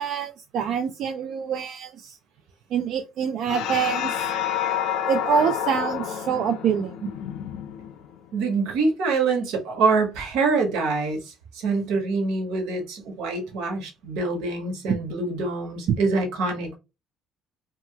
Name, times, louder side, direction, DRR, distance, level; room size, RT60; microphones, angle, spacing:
voice 1, 0.0-2.2 2.7-4.2 5.1-7.1, right 7 dB, 60° right, 0.4 m, -26 dB
sound 1, 3.5-8.3, left 9 dB, 80° left, 0.4 m, -29 dB
voice 2, 8.3-16.8, right 4 dB, 85° right, 1.0 m, -25 dB
2.7 x 2.3 x 2.8 m
cardioid pair, 135°, 0 cm